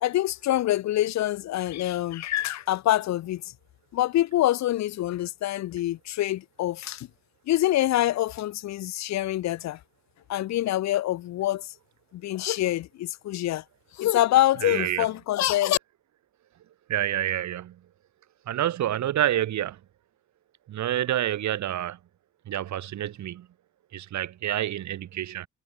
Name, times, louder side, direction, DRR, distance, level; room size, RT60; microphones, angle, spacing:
voice 1, 0.0-3.4 3.9-7.1 7.5-9.8 10.3-11.7 12.1-13.6 13.9-15.8, left 14 dB, 65° left, 0.6 m, -25 dB
voice 2, 14.6-15.1 16.9-17.8 18.5-19.8 20.7-22.0 22.4-23.5 23.9-25.5, right 12 dB, 65° right, 1.7 m, -28 dB
cardioid pair, 90°, 30 cm